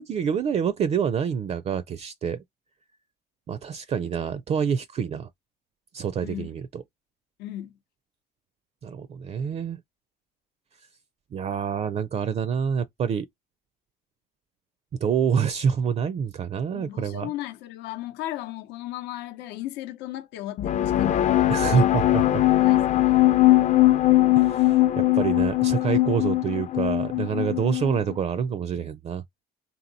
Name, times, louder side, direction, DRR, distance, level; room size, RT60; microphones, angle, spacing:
voice 1, 0.0-2.4 3.5-5.3 5.9-6.8 8.8-9.8 11.3-13.3 15.0-17.3 21.5-22.4 24.3-29.2, right 7 dB, 40° right, 0.4 m, -27 dB
voice 2, 7.4-7.7 16.7-21.5 22.6-23.2, left 14 dB, 90° left, 0.7 m, -36 dB
sound 1, 20.6-28.1, left 15 dB, 45° left, 0.5 m, -20 dB
3.7 x 2.9 x 3.9 m
cardioid pair, 110°, 17 cm